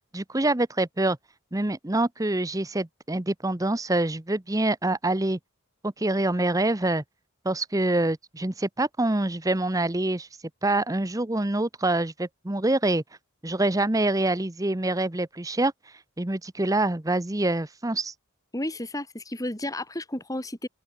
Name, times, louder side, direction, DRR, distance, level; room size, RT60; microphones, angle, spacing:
voice 1, 0.1-1.2 1.5-5.4 5.8-7.0 7.4-10.3 10.6-13.0 13.4-15.7 16.2-18.1, right 2 dB, 15° right, 0.8 m, -25 dB
voice 2, 18.5-20.7, left 1 dB, 15° left, 2.4 m, -32 dB
open air
head